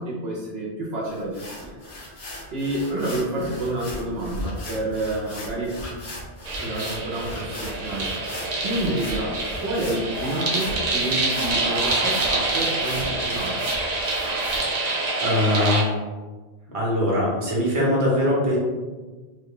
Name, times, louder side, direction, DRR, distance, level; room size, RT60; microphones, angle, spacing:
voice 1, 0.0-1.7 2.5-5.8 6.6-8.1 8.6-13.6, right 1 dB, 70° right, -5 dB, 0.9 m, -29 dB
sound 1, 1.1-14.6, equal, 50° left, 0.8 m, -37 dB
sound 2, 6.5-15.8, right 2 dB, 50° right, 0.5 m, -26 dB
voice 2, 15.2-15.9 16.7-18.6, left 1 dB, 35° right, -5 dB, 0.9 m, -22 dB
3.0 x 2.3 x 3.6 m, 1.3 s
omnidirectional pair, 1.1 m